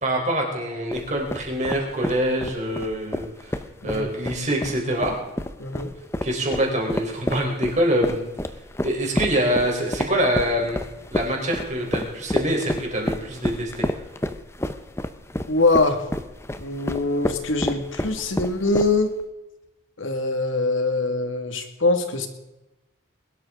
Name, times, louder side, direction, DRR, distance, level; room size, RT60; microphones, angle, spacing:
voice 1, 0.0-3.6 3.8-5.2 6.2-8.3 8.8-10.8 11.1-13.9, right 1 dB, 35° right, 0 dB, 3.8 m, -25 dB
sound 1, 0.9-19.2, left 1 dB, 15° left, 0.6 m, -30 dB
voice 2, 5.6-5.9 15.5-16.0 16.6-19.2 20.0-22.3, left 3 dB, 85° left, 7 dB, 1.9 m, -23 dB
21.5 x 12.5 x 3.7 m, 1.0 s
head